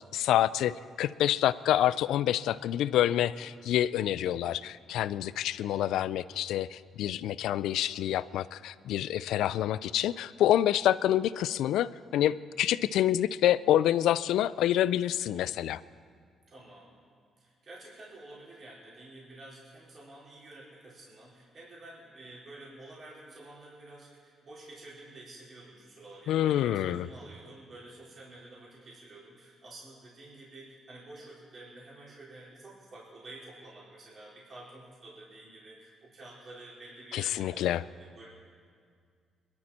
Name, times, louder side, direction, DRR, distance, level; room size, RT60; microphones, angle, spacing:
voice 1, 0.1-15.8 26.3-27.1 37.1-37.8, left 12 dB, 85° left, 17 dB, 0.3 m, -27 dB
voice 2, 16.5-17.0 17.4-38.3, right 2 dB, 45° right, -6 dB, 4.6 m, -50 dB
23.0 x 12.0 x 4.3 m, 2.1 s
cardioid pair, 90°, 0 cm